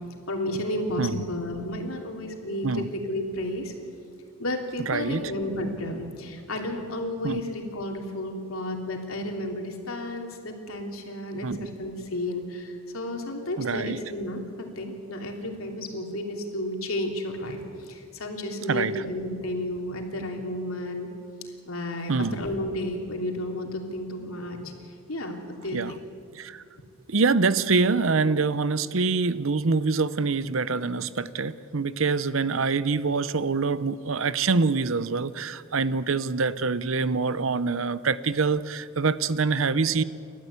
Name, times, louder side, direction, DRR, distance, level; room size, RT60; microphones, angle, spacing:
voice 1, 0.3-3.7 4.4-21.1 21.7-24.7 25.1-26.0, left 1 dB, 85° left, 2 dB, 3.1 m, -32 dB
voice 2, 4.8-5.3 7.2-7.4 11.4-11.7 13.6-14.0 18.7-19.0 22.1-22.4 25.7-25.9 26.4-26.6 27.1-40.0, right 4 dB, 65° right, 15 dB, 0.8 m, -25 dB
30.0 x 13.0 x 8.4 m, 2.4 s
head